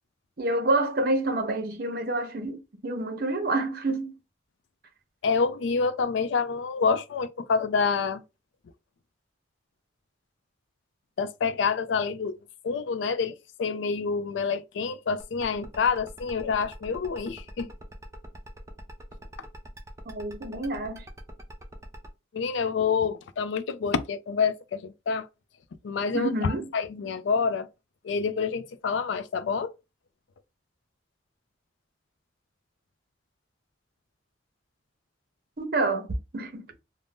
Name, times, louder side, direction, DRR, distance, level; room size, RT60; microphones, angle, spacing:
voice 1, 0.4-4.1 20.1-21.0 26.1-26.7 35.6-36.1 36.3-36.6, right 2 dB, 50° right, 0.7 m, -28 dB
voice 2, 5.2-8.2 11.2-12.4 12.6-17.7 22.3-25.3 25.8-27.7 28.0-29.7, left 5 dB, 75° left, 0.4 m, -27 dB
sound 1, 15.2-22.1, right 1 dB, 15° right, 0.4 m, -45 dB
2.5 x 2.0 x 3.4 m
head